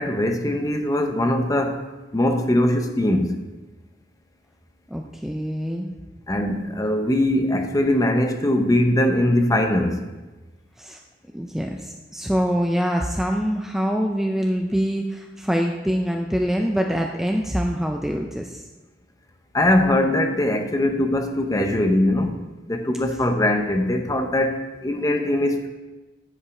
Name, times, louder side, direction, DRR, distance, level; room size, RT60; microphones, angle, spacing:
voice 1, 0.0-1.8 2.1-3.4 6.3-10.0 19.5-22.4 22.7-25.7, left 1 dB, 20° left, 5 dB, 0.8 m, -21 dB
voice 2, 4.9-5.9 10.8-11.0 11.3-18.6, equal, ahead, 2 dB, 0.4 m, -24 dB
9.9 x 5.5 x 4.8 m, 1.1 s
head